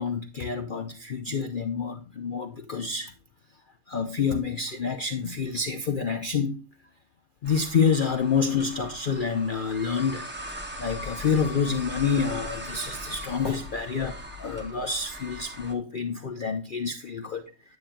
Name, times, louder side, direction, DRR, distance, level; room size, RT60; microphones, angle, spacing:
voice 1, 0.0-3.1 3.9-6.6 7.4-10.3 10.8-17.4, left 5 dB, 65° left, 0.5 m, -28 dB
sound 1, 7.4-15.7, equal, 10° right, 0.9 m, -39 dB
9.4 x 8.8 x 2.2 m
omnidirectional pair, 1.7 m